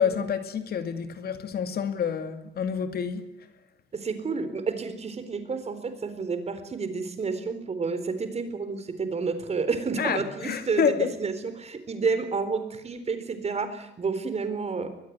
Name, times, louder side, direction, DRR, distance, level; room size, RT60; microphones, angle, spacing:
voice 1, 0.0-3.3 10.0-11.1, left 7 dB, 55° left, 2.4 m, -28 dB
voice 2, 3.9-14.9, right 4 dB, 35° right, 4.0 m, -30 dB
23.0 x 21.0 x 9.6 m
cardioid pair, 140°, 19 cm